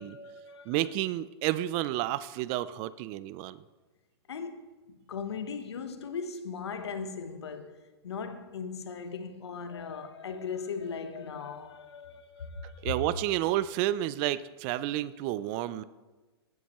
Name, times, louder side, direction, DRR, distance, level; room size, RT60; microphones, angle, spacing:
voice 1, 0.0-0.8 4.3-13.2, left 5 dB, 80° left, 1.1 m, -38 dB
voice 2, 0.7-3.6 12.8-15.8, right 14 dB, 35° right, 0.4 m, -30 dB
15.5 x 7.1 x 3.0 m
hypercardioid pair, 125°, 14 cm